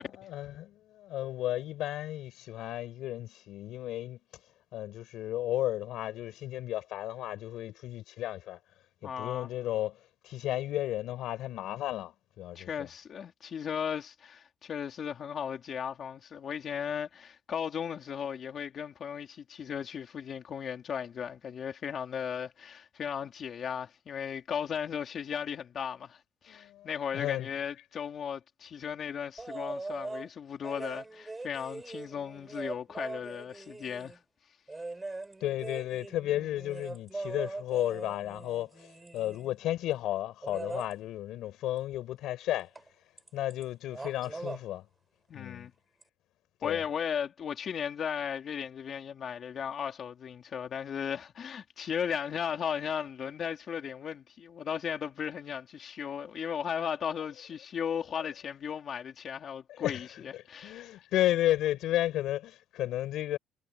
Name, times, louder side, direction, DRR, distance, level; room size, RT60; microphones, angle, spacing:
voice 1, 0.2-4.2 4.7-8.6 9.0-10.0 10.2-12.9 26.5-26.9 27.1-27.5 35.4-42.7 43.3-44.8 45.3-45.7 46.6-46.8 59.7-60.1 60.3-63.4, left 14 dB, 75° left, 4.4 m, -33 dB
voice 2, 9.0-9.5 12.6-26.2 26.4-34.2 45.3-45.7 46.6-61.0, left 7 dB, 45° left, 3.5 m, -36 dB
sound 1, 29.4-30.3 30.6-34.2 34.7-39.5 40.4-40.9 42.7-42.9 43.2-43.6 43.9-44.6 46.0-46.1, right 2 dB, 15° right, 4.4 m, -41 dB
cardioid pair, 140°, 0 cm